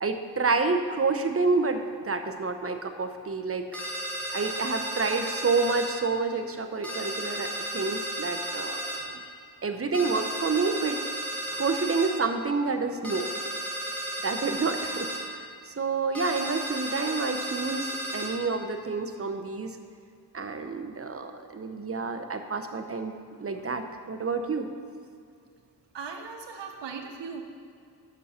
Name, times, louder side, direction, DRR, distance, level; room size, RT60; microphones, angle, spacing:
voice 1, 0.0-3.6 4.3-7.5 7.7-8.8 9.6-11.0 11.5-13.3 14.2-15.1 15.7-19.7 20.3-24.7, right 4 dB, 30° right, 7 dB, 0.8 m, -28 dB
sound 1, 3.7-5.9 6.8-9.0 9.9-12.1 13.0-15.2 16.1-18.3, right 1 dB, 5° left, 2.2 m, -34 dB
voice 2, 25.9-27.4, right 5 dB, 80° right, 4 dB, 1.1 m, -38 dB
8.4 x 6.3 x 5.7 m, 2.3 s
cardioid pair, 60°, 43 cm